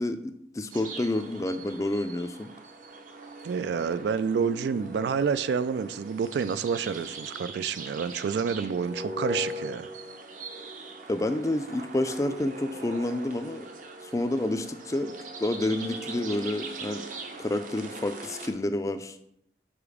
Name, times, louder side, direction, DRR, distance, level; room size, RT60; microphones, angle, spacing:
voice 1, 0.0-2.5 11.1-13.7 14.0-15.1 15.4-17.0 17.4-19.2, left 1 dB, 15° left, 9 dB, 0.3 m, -29 dB
sound 1, 0.7-18.5, right 2 dB, 45° right, 0.7 m, -41 dB
voice 2, 3.4-9.9, right 6 dB, 70° right, 14 dB, 0.3 m, -28 dB
5.0 x 4.7 x 4.9 m, 0.76 s
head